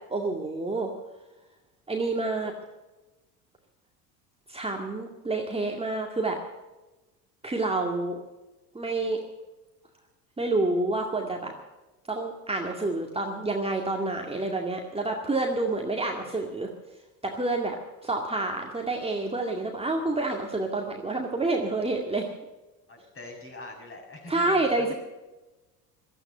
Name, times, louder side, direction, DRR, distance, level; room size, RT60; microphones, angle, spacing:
voice 1, 0.1-0.9 1.9-2.5 4.5-6.4 7.4-8.2 8.7-9.2 10.4-11.5 12.1-16.7 17.2-17.8 18.0-22.3 24.3-24.9, right 2 dB, 10° right, 1 dB, 2.1 m, -28 dB
voice 2, 22.9-24.9, left 2 dB, 25° left, 1 dB, 6.6 m, -44 dB
16.0 x 13.0 x 6.7 m, 1.1 s
hypercardioid pair, 65°, 47 cm